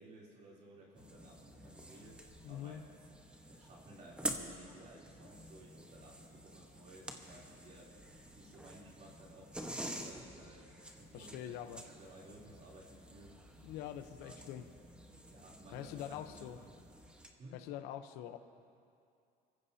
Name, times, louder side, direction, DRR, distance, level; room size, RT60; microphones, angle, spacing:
voice 1, 0.0-13.7 14.2-14.4 15.3-16.8 17.4-17.6, right 1 dB, 45° right, -4 dB, 3.3 m, -57 dB
sound 1, 0.9-17.3, right 1 dB, 5° right, 1.2 m, -48 dB
voice 2, 2.4-2.8 11.1-11.8 13.6-14.6 15.7-16.6 17.5-18.4, left 11 dB, 85° left, 10 dB, 0.9 m, -44 dB
26.0 x 15.0 x 2.8 m, 2.5 s
cardioid pair, 115°, 16 cm